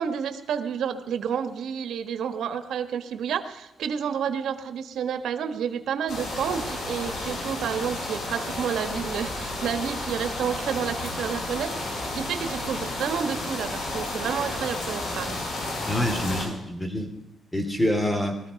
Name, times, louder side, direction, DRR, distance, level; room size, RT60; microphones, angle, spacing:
voice 1, 0.0-15.4, right 7 dB, 85° right, 9 dB, 1.4 m, -30 dB
sound 1, 6.1-16.4, left 2 dB, 80° left, 6.3 m, -32 dB
voice 2, 15.9-17.1 17.5-18.4, left 1 dB, 15° left, 5 dB, 2.7 m, -26 dB
20.0 x 14.0 x 5.2 m, 0.89 s
cardioid pair, 125°, 0 cm